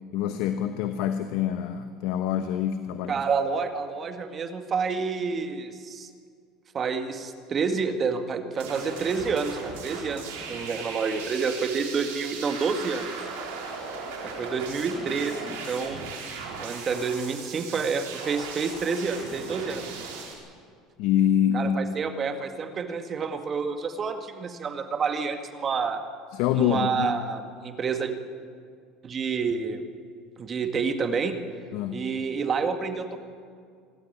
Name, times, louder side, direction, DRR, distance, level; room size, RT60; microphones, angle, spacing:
voice 1, 0.1-3.2 21.0-21.8 26.3-27.1 31.7-32.1, left 10 dB, 70° left, 9 dB, 1.1 m, -26 dB
voice 2, 3.1-6.1 6.7-13.1 14.2-16.0 16.6-19.9 21.5-26.0 26.5-28.1 29.0-29.8 30.4-31.4 31.9-33.2, right 5 dB, 35° right, 7 dB, 2.0 m, -29 dB
sound 1, 8.6-20.3, right 4 dB, 80° right, 4.4 m, -38 dB
26.5 x 12.5 x 9.7 m, 2.2 s
supercardioid pair, 90°, 0 cm